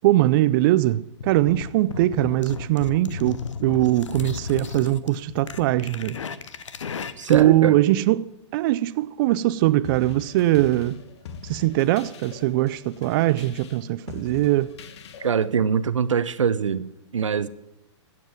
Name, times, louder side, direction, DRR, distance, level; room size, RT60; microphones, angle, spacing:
voice 1, 0.0-6.2 7.3-11.0 11.4-14.7, right 15 dB, 45° right, 0.4 m, -21 dB
sound 1, 1.2-7.6, left 6 dB, 80° left, 0.9 m, -34 dB
voice 2, 7.2-7.8 15.2-17.5, right 7 dB, 90° right, 0.7 m, -23 dB
sound 2, 9.8-15.5, left 6 dB, 65° left, 1.2 m, -42 dB
15.0 x 7.7 x 7.3 m
hypercardioid pair, 120°, 15 cm